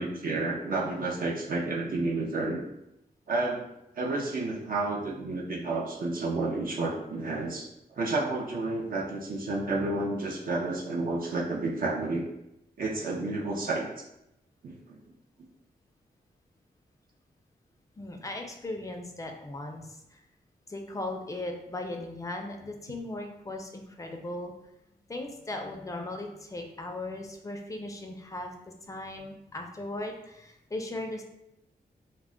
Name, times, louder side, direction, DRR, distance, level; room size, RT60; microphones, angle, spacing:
voice 1, 0.0-2.6 3.3-3.6 4.0-12.3 12.8-13.9 14.6-15.0, right 2 dB, 60° right, -3 dB, 0.4 m, -30 dB
voice 2, 18.0-20.2 20.7-24.5 25.1-28.5 28.9-31.2, left 2 dB, 20° left, 3 dB, 0.3 m, -37 dB
2.2 x 2.1 x 3.6 m, 0.85 s
wide cardioid pair, 120°, 17 cm